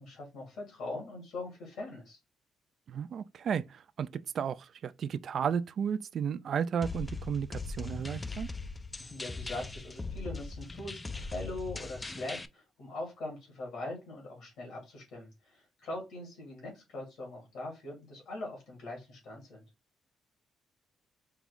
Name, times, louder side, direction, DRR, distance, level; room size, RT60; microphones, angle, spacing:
voice 1, 0.0-2.2 9.0-19.6, left 2 dB, 85° left, 2.3 m, -42 dB
voice 2, 2.9-4.1 4.3-8.5, right 7 dB, 60° right, 0.3 m, -33 dB
sound 1, 6.8-12.5, left 3 dB, 20° left, 0.3 m, -40 dB
4.6 x 2.0 x 3.7 m
cardioid pair, 90°, 0 cm